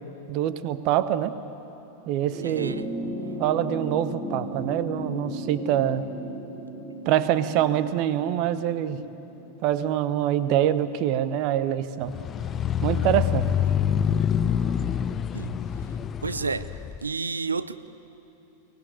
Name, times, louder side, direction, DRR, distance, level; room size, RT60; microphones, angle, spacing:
voice 1, 0.3-1.3 2.1-2.8 3.4-6.0 7.1-9.0 9.6-12.1 12.8-13.5, right 11 dB, 40° right, 13 dB, 1.0 m, -25 dB
sound 1, 2.3-10.9 12.1-12.2, right 1 dB, 20° right, 2.4 m, -36 dB
voice 2, 2.4-2.9 15.3-15.5 16.2-16.7 17.0-17.9, right 4 dB, 75° right, 15 dB, 0.6 m, -30 dB
sound 2, 12.1-17.0, left 8 dB, 25° left, 0.5 m, -26 dB
24.0 x 17.5 x 9.5 m, 2.9 s
figure-of-eight pair, 90°, 0 cm